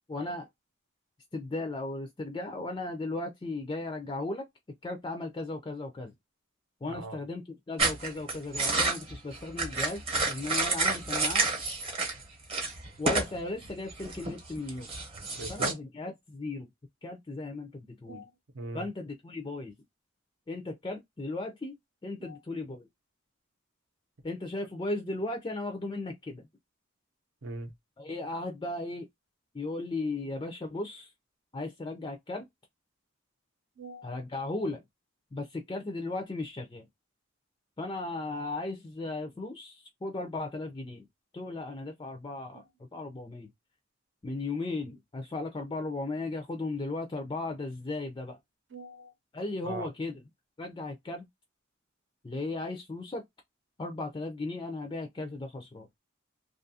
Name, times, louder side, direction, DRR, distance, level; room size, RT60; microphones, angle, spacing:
voice 1, 0.1-0.5 1.3-4.5 4.8-6.1 6.8-11.5 13.0-14.9 15.5-16.7 17.0-18.2 18.7-19.7 20.5-21.8 22.0-22.9 24.2-26.4 28.0-29.1 29.5-31.1 31.5-32.5 34.0-34.8 35.3-36.8 37.8-41.1 41.3-43.5 44.2-48.4 49.3-50.2 50.6-51.3 52.2-53.2 53.8-55.9, left 2 dB, 20° left, 0.4 m, -36 dB
sound 1, 7.8-12.2 12.5-13.4 13.6-15.7, right 3 dB, 30° right, 0.8 m, -29 dB
voice 2, 15.3-15.8 18.1-18.3 18.5-18.8 22.2-22.4 27.4-27.7 33.8-34.2 48.7-49.1 49.6-49.9, right 2 dB, 65° right, 0.7 m, -40 dB
2.6 x 2.4 x 2.6 m
head